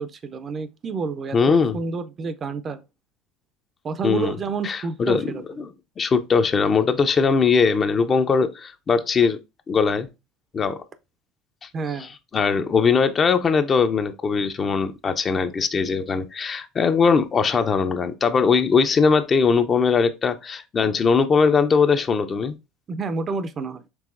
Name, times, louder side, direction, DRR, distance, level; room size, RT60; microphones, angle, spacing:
voice 1, 0.0-2.8 3.8-5.4 11.7-12.1 22.9-23.8, right 4 dB, 35° right, 0.5 m, -29 dB
voice 2, 1.3-1.8 4.0-4.3 4.6-5.3 5.6-5.7 6.0-9.4 9.7-10.1 10.5-10.8 12.0-22.6, left 5 dB, 35° left, 0.5 m, -20 dB
4.7 x 3.4 x 2.5 m
hypercardioid pair, 85°, 0 cm